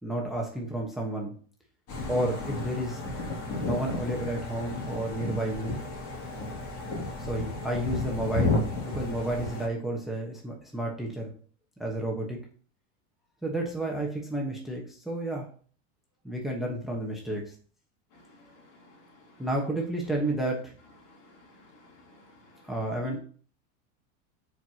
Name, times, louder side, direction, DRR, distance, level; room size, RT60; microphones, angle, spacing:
voice 1, 0.0-1.3 2.1-3.0 3.6-5.8 7.2-11.3 11.8-12.4 13.4-15.5 16.2-17.5 19.4-20.7 22.6-23.2, right 1 dB, ahead, -1 dB, 1.1 m, -31 dB
sound 1, 1.9-9.7, left 2 dB, 40° left, 2.4 m, -32 dB
voice 2, 18.1-19.4 21.0-22.7 23.0-23.2, left 3 dB, 55° left, -1 dB, 3.1 m, -52 dB
12.5 x 4.7 x 2.8 m, 0.44 s
supercardioid pair, 150°, 38 cm